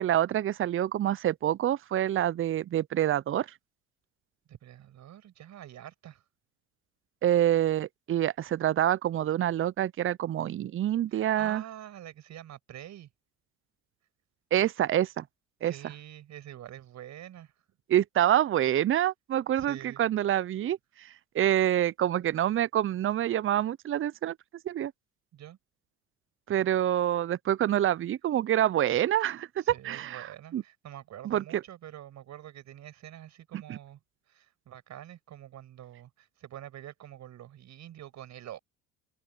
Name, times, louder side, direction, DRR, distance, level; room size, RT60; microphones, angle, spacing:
voice 1, 0.0-3.5 7.2-11.6 14.5-15.2 15.6-15.7 17.9-24.4 24.6-24.9 26.5-30.3 30.5-30.6 31.2-31.6 33.5-33.8, right 11 dB, 35° right, 0.8 m, -27 dB
voice 2, 4.5-6.2 11.1-13.1 15.6-17.5 19.5-20.0 25.3-25.6 29.6-34.0 34.3-38.6, right 12 dB, 50° right, 6.3 m, -46 dB
open air
hypercardioid pair, 65°, 35 cm